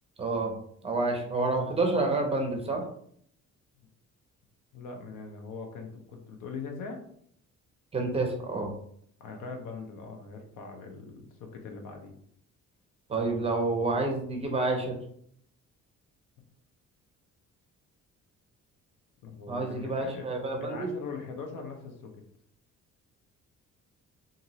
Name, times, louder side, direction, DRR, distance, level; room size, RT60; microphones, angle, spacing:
voice 1, 0.2-0.5 0.8-2.9 7.9-8.7 13.1-14.9 19.5-20.9, right 2 dB, 20° right, 2 dB, 0.5 m, -28 dB
voice 2, 4.7-7.0 9.2-12.1 19.2-20.3 20.6-22.1, left 4 dB, 85° left, 3 dB, 0.7 m, -41 dB
2.9 x 2.6 x 2.7 m, 0.65 s
cardioid pair, 165°, 31 cm